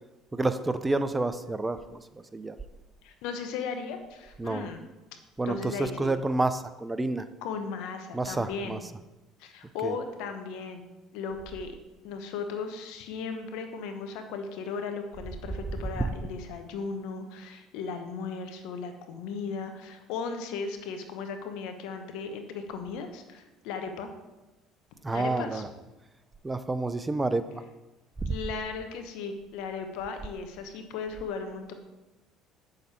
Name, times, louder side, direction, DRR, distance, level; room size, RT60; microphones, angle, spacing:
voice 1, 0.3-1.8 2.3-2.6 4.4-4.7 5.4-7.3 8.1-8.8 9.8-10.0 16.0-16.1 25.0-25.7 26.4-27.5 28.2-28.4, right 2 dB, 15° right, 12 dB, 0.6 m, -29 dB
voice 2, 3.0-4.8 5.5-6.1 7.4-8.8 9.4-10.8 11.1-11.8 12.0-24.1 25.1-25.6 28.3-31.7, left 5 dB, 75° left, 6 dB, 1.1 m, -36 dB
8.2 x 6.5 x 4.3 m, 1.0 s
hypercardioid pair, 75°, 0 cm